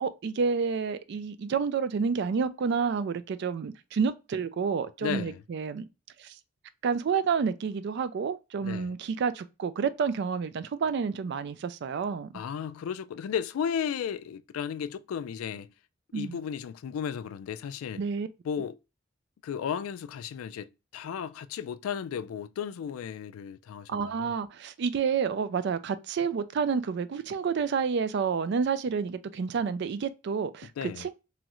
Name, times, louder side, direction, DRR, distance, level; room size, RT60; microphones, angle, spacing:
voice 1, 0.0-5.9 6.2-6.3 6.8-12.3 16.1-16.4 18.0-18.3 23.9-30.7 31.0-31.1, right 6 dB, 55° right, 0.3 m, -29 dB
voice 2, 5.0-5.4 8.6-8.9 12.3-15.7 16.1-18.0 18.4-18.8 19.4-24.3 30.8-31.1, left 8 dB, 85° left, 0.3 m, -34 dB
3.0 x 2.4 x 2.9 m
head